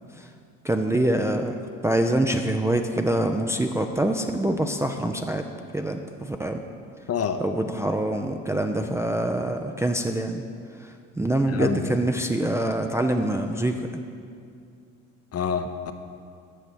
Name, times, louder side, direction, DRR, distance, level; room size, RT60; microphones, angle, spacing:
voice 1, 0.6-1.5 1.8-5.4 5.7-6.6 7.4-10.4 11.2-13.8, right 1 dB, 5° right, 4 dB, 0.5 m, -25 dB
voice 2, 7.1-7.4 11.5-11.9 15.3-15.9, left 7 dB, 40° left, 8 dB, 0.8 m, -27 dB
9.2 x 6.9 x 6.2 m, 2.4 s
hypercardioid pair, 65°, 40 cm